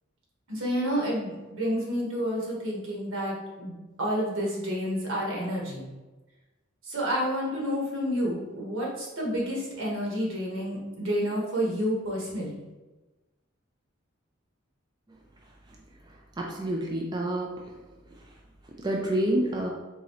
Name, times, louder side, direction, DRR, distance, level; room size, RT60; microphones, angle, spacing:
voice 1, 0.5-5.9 6.9-12.5, equal, 75° right, -3 dB, 1.4 m, -29 dB
voice 2, 16.4-17.5 18.8-19.7, right 1 dB, 20° right, -1 dB, 0.4 m, -28 dB
4.0 x 3.6 x 3.1 m, 1.1 s
head